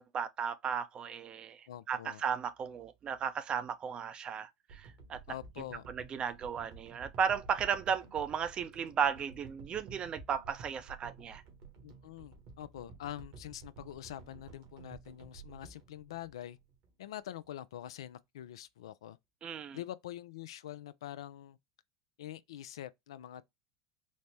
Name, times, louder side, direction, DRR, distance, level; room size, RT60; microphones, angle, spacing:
voice 1, 0.0-5.2 5.9-11.4 19.4-19.8, right 7 dB, 35° right, 0.6 m, -35 dB
voice 2, 1.7-2.2 5.3-5.9 11.8-16.6 17.0-19.2 19.7-21.6 22.2-23.4, left 12 dB, 80° left, 0.3 m, -45 dB
sound 1, 4.7-16.9 17.4-17.5, right 5 dB, 60° right, 1.4 m, -53 dB
4.1 x 2.1 x 3.2 m
hypercardioid pair, 90°, 3 cm